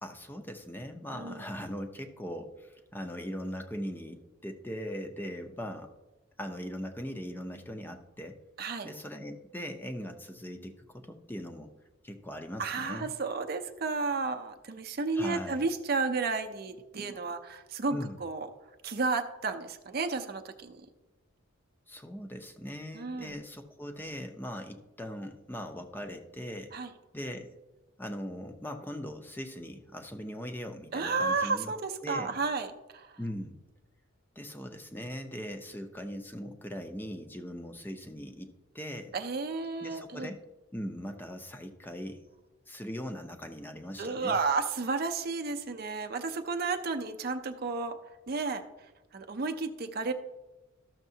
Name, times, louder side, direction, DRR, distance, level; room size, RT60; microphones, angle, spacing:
voice 1, 0.0-5.9 6.4-8.4 8.8-11.7 12.0-13.1 15.1-15.7 17.9-18.2 21.9-26.8 27.1-27.6 28.0-31.7 32.0-32.4 33.2-33.6 34.4-39.2 39.8-40.4 40.7-42.2 42.7-44.4, equal, 10° left, 6 dB, 0.6 m, -40 dB
voice 2, 1.1-1.4 8.6-8.9 12.6-18.5 18.8-20.8 22.9-23.4 26.7-26.9 30.9-33.2 39.1-40.3 44.0-48.0 48.3-48.6 49.1-50.1, right 4 dB, 45° right, 7 dB, 0.5 m, -32 dB
13.5 x 6.5 x 2.7 m, 1.0 s
head